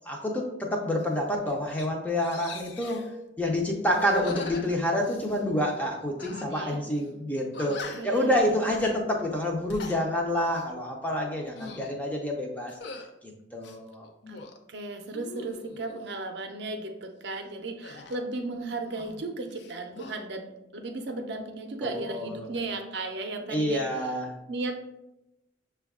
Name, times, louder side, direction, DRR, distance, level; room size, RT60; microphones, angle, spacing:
voice 1, 0.1-3.1 3.4-12.7 13.2-14.0 21.8-22.5 23.5-24.3, left 1 dB, 10° left, 0 dB, 0.5 m, -28 dB
sound 1, 1.0-1.1 1.5-1.9 2.2-3.1 3.9-5.4 6.2-6.7 7.0-7.1 7.5-8.2 8.7-9.0 9.5-10.0 10.4-10.7 11.3-11.9 12.7-13.1 13.6-14.6 15.1-16.0 17.8-19.2 19.5-20.2, left 2 dB, 65° left, 0.4 m, -41 dB
voice 2, 6.5-6.8 7.6-8.6 14.3-14.4 14.7-24.1 24.5-24.8, right 2 dB, 60° right, 5 dB, 0.5 m, -35 dB
6.2 x 2.2 x 3.5 m, 0.90 s
head